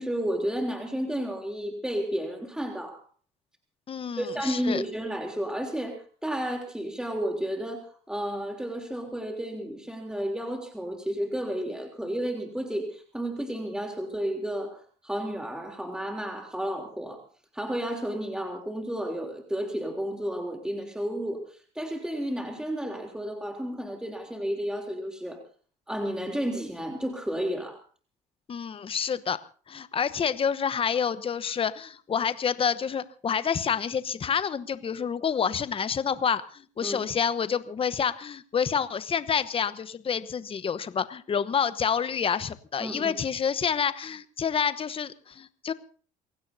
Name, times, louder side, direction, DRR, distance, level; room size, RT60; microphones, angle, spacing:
voice 1, 0.0-3.0 4.2-17.2 17.5-25.4 25.9-27.8 36.8-37.0 42.8-43.2, equal, 5° right, 2 dB, 3.4 m, -32 dB
voice 2, 3.9-4.8 28.5-29.4 29.7-45.7, left 7 dB, 30° left, 13 dB, 1.0 m, -28 dB
29.0 x 16.5 x 2.8 m, 0.43 s
supercardioid pair, 75°, 17 cm